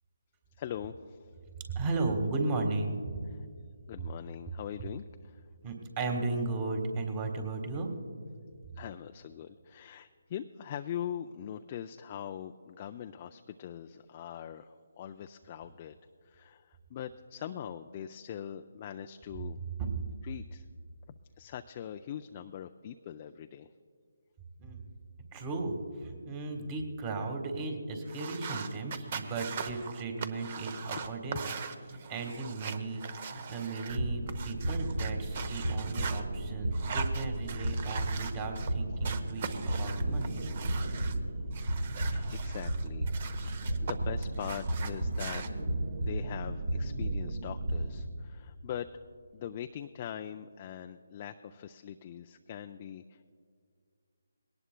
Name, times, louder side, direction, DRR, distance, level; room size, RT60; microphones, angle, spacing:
voice 1, 0.6-1.3 3.4-3.5 3.9-5.4 8.7-16.0 16.2-19.6 20.2-20.6 21.4-23.7 42.0-45.5 46.0-48.9 49.3-53.3, left 9 dB, 35° left, 7 dB, 0.4 m, -42 dB
voice 2, 1.7-3.0 5.6-7.9 19.8-19.9 24.6-24.8 25.3-31.5 31.9-40.4, right 3 dB, 25° right, 4 dB, 1.6 m, -35 dB
sound 1, 28.1-36.2 36.7-38.7 39.0-41.2 41.5-43.9 44.2-45.5, right 6 dB, 40° right, 0.8 m, -41 dB
sound 2, 33.9-48.0, right 1 dB, 65° right, 1.7 m, -33 dB
20.5 x 18.0 x 2.2 m, 2.1 s
figure-of-eight pair, 150°, 0 cm